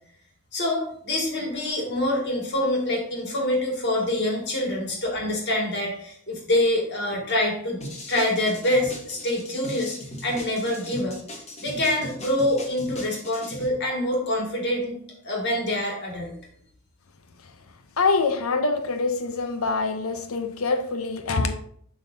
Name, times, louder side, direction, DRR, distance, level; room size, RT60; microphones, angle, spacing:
voice 1, 0.5-7.8 8.1-10.0 10.2-11.2 11.6-15.0 15.2-16.3, left 1 dB, 55° left, -1 dB, 2.1 m, -25 dB
sound 1, 7.8-13.7, left 1 dB, 30° left, 1.3 m, -39 dB
voice 2, 18.0-21.5, left 4 dB, 80° left, 7 dB, 0.8 m, -25 dB
11.0 x 3.9 x 2.7 m, 0.62 s
head